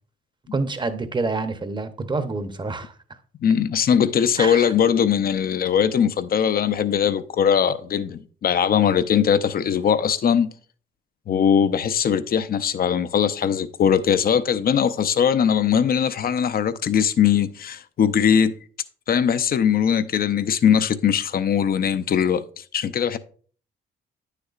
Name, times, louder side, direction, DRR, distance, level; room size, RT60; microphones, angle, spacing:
voice 1, 0.5-2.9 4.4-4.7, right 3 dB, 25° right, 0.8 m, -27 dB
voice 2, 3.4-10.5 11.3-18.5 19.1-23.2, left 8 dB, 50° left, 0.5 m, -20 dB
9.3 x 6.6 x 2.4 m
cardioid pair, 90°, 20 cm